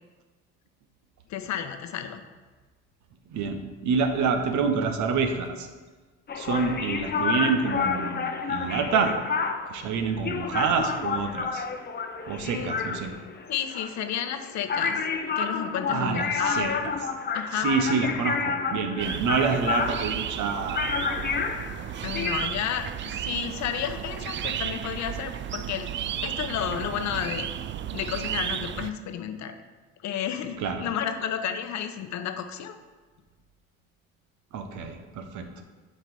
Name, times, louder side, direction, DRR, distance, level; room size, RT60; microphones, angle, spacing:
voice 1, 1.3-2.2 12.4-12.7 13.5-15.0 15.4-16.8 17.3-17.7 22.0-25.9 26.2-27.5 27.9-29.6 30.0-32.8, left 9 dB, 60° left, 8 dB, 0.8 m, -31 dB
voice 2, 3.3-5.7 6.3-9.1 9.7-11.6 12.3-13.1 15.9-17.0 17.5-21.3 30.6-30.8 34.5-35.5, right 5 dB, 65° right, 6 dB, 1.0 m, -27 dB
sound 1, 6.3-22.5, left 5 dB, 30° left, 0.7 m, -30 dB
sound 2, 19.0-28.9, right 10 dB, 40° right, 0.4 m, -34 dB
7.5 x 4.2 x 5.4 m, 1.3 s
supercardioid pair, 80°, 31 cm